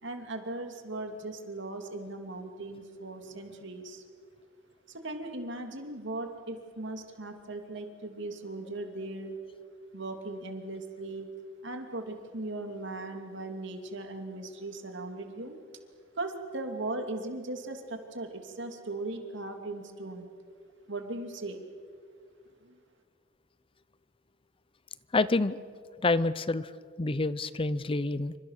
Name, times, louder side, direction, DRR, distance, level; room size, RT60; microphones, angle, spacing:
voice 1, 0.0-4.0 4.9-9.4 9.9-11.3 11.6-15.6 16.1-20.3 20.9-21.6 22.6-22.8, right 2 dB, 60° right, 5 dB, 2.8 m, -38 dB
voice 2, 25.1-25.6 26.0-26.7 27.0-28.4, left 3 dB, 25° left, 16 dB, 0.6 m, -27 dB
28.0 x 25.5 x 6.6 m, 2.1 s
head